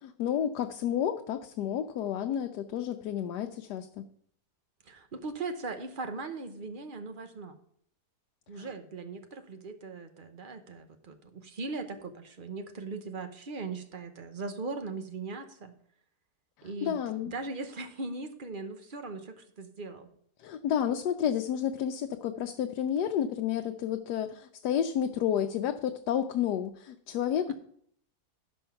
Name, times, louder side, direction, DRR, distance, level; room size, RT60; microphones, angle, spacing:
voice 1, 0.0-4.0 8.6-8.7 16.6-17.3 20.4-27.5, left 9 dB, 80° left, 6 dB, 1.2 m, -31 dB
voice 2, 4.9-7.6 8.5-15.7 16.6-20.1 27.5-27.6, right 3 dB, 40° right, 7 dB, 0.9 m, -39 dB
12.5 x 5.5 x 5.7 m, 0.66 s
omnidirectional pair, 1.8 m